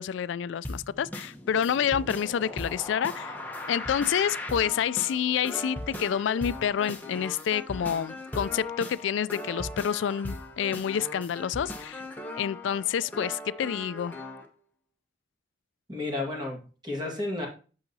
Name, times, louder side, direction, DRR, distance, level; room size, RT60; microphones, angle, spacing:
voice 1, 0.0-3.4 3.7-12.0 12.4-14.2, left 8 dB, 85° left, 0.3 m, -28 dB
sound 1, 0.6-14.5, left 1 dB, 10° left, 0.8 m, -38 dB
voice 2, 15.9-17.5, left 2 dB, 25° right, 1.7 m, -32 dB
8.7 x 5.6 x 2.8 m
head